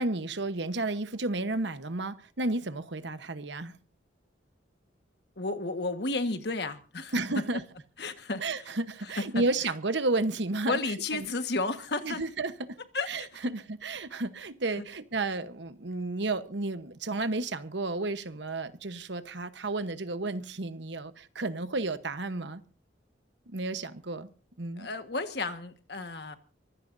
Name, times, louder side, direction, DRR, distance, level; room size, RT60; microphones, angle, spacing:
voice 1, 0.0-3.7 7.1-7.6 8.4-11.3 12.0-12.8 13.1-22.6 23.5-24.3 24.6-24.9, right 2 dB, 75° right, 1.1 m, -32 dB
voice 2, 5.4-7.1 8.0-8.4 10.7-12.2 12.9-13.3 24.8-26.4, left 3 dB, 60° left, 1.5 m, -32 dB
24.5 x 16.0 x 2.7 m
head